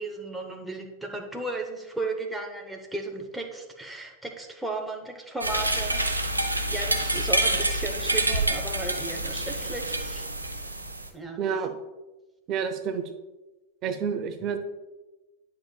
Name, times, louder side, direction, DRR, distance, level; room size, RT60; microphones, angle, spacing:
voice 1, 0.0-6.0 6.7-10.3 11.1-11.4, right 2 dB, 5° right, 1 dB, 0.8 m, -35 dB
sound 1, 5.4-11.1, right 1 dB, 85° right, 0.7 m, -27 dB
voice 2, 11.4-11.7 12.5-13.0 13.8-14.6, right 7 dB, 35° right, 8 dB, 0.7 m, -29 dB
10.5 x 5.8 x 2.3 m, 1.1 s
figure-of-eight pair, 90°, 0 cm